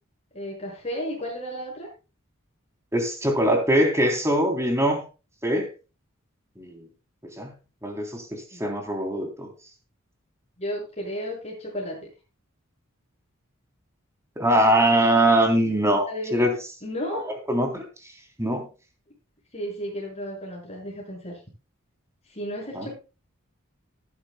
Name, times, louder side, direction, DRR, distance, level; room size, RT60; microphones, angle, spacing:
voice 1, 0.3-1.9 8.5-8.6 10.6-12.0 16.1-16.5 16.8-17.3 19.5-21.4 22.3-22.9, equal, 30° left, -2 dB, 6.3 m, -33 dB
voice 2, 2.9-5.0 5.4-5.7 6.6-6.8 7.4-7.5 7.8-9.5 14.4-16.5 17.1-17.8 18.4-18.7 22.7-22.9, right 1 dB, 15° right, 4 dB, 3.3 m, -22 dB
18.5 x 10.0 x 2.2 m, 0.32 s
head